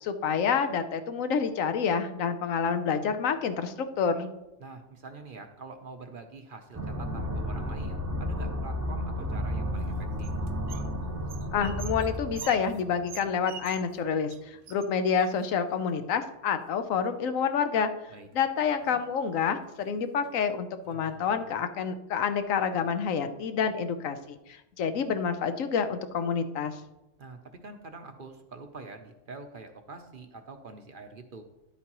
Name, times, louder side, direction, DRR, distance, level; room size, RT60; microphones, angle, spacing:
voice 1, 0.0-4.3 11.5-17.9 18.3-26.8, left 6 dB, 80° left, 9 dB, 1.1 m, -28 dB
voice 2, 4.6-10.3 18.1-18.3 27.2-31.4, right 3 dB, 50° right, 6 dB, 0.8 m, -45 dB
sound 1, 6.7-13.3, equal, 15° right, 0.7 m, -33 dB
sound 2, 9.8-10.9 11.2-14.0 14.3-14.4 14.7-15.8 16.5-17.1 18.2-18.3 18.6-19.1 19.6-19.8 20.2-20.3 20.8-21.7, right 8 dB, 80° right, 0.4 m, -46 dB
11.0 x 8.4 x 3.0 m, 0.93 s
omnidirectional pair, 1.4 m